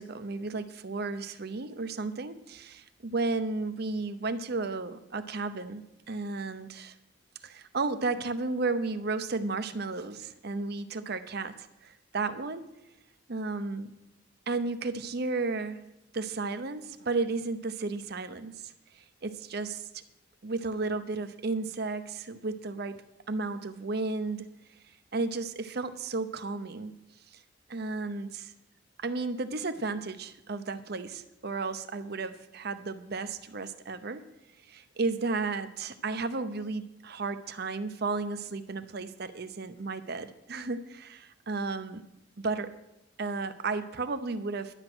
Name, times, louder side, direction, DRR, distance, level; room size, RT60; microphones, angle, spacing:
voice 1, 0.0-5.8 6.1-6.9 7.4-12.6 13.3-13.9 14.5-15.8 16.1-20.0 20.4-23.0 23.3-24.5 25.1-26.9 27.7-28.5 29.0-34.2 34.6-42.0 42.4-42.7 43.2-44.7, right 3 dB, 55° right, 11 dB, 0.7 m, -33 dB
11.5 x 8.7 x 6.2 m, 0.89 s
head